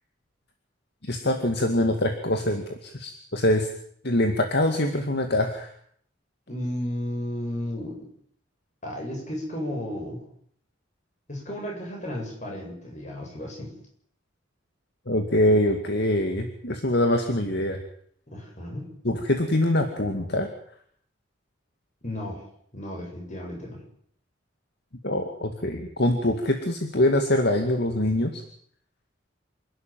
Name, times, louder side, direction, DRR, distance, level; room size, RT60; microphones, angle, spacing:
voice 1, 1.0-3.7 4.0-5.7 15.1-17.8 19.0-20.5 25.0-28.4, left 1 dB, 60° left, 5 dB, 2.3 m, -24 dB
voice 2, 6.5-8.1 8.8-10.2 11.3-13.8 18.3-18.9 22.0-22.5 22.7-23.8, left 1 dB, 40° left, 0 dB, 8.0 m, -33 dB
27.0 x 12.0 x 9.4 m, 0.63 s
head